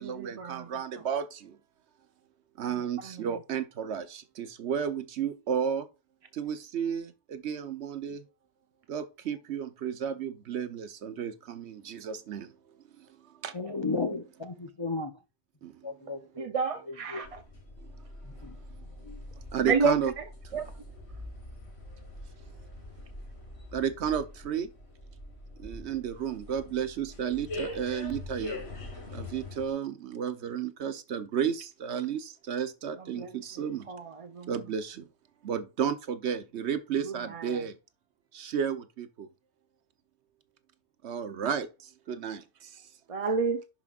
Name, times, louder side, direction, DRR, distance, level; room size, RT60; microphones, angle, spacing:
voice 1, 0.0-1.6 2.6-5.9 6.3-8.2 8.9-12.5 13.0-13.1 13.4-13.5 15.6-15.8 17.8-17.9 19.5-20.1 20.5-20.6 23.7-24.7 25.6-28.6 29.1-33.9 34.5-35.1 35.4-37.8 38.3-39.3 41.1-42.8, right 8 dB, 70° right, 1.0 m, -33 dB
voice 2, 13.5-15.1 15.8-16.5 16.8-17.2 18.2-18.6 19.0-19.2, left 3 dB, 30° left, 0.6 m, -34 dB
voice 3, 16.4-17.3 19.7-19.9 20.5-20.6 33.1-33.3 33.9-34.5 37.0-37.6 43.1-43.6, right 5 dB, 40° right, 0.5 m, -29 dB
sound 1, 17.2-29.7, left 2 dB, 65° left, 1.9 m, -43 dB
11.0 x 5.0 x 2.4 m
omnidirectional pair, 1.2 m